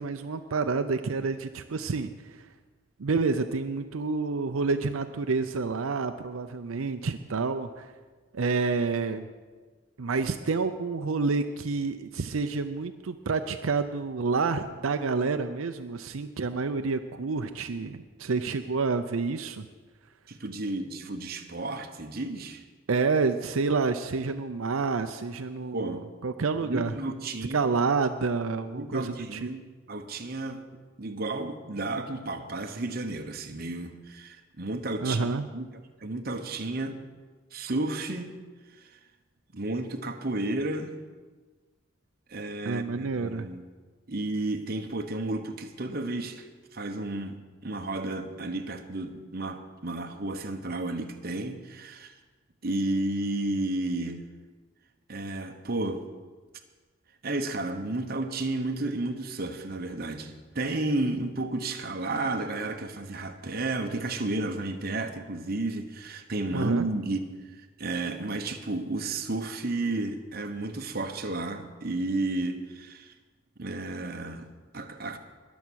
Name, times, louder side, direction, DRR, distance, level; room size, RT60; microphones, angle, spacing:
voice 1, 0.0-2.5 3.0-7.9 8.3-9.3 10.0-19.6 22.9-26.9 27.5-29.5 35.0-35.5 42.7-43.5 66.5-66.9, right 4 dB, 80° right, 8 dB, 0.6 m, -29 dB
voice 2, 20.3-22.6 25.7-26.0 26.6-27.7 28.7-30.6 31.0-35.7 36.0-37.0 37.5-38.3 39.5-40.9 42.3-43.6 44.1-46.5 46.7-47.4 47.6-52.1 52.6-54.3 55.1-56.1 57.2-67.3 67.8-73.1 73.6-75.2, right 2 dB, 45° right, 5 dB, 1.0 m, -32 dB
21.0 x 7.2 x 6.3 m, 1.4 s
head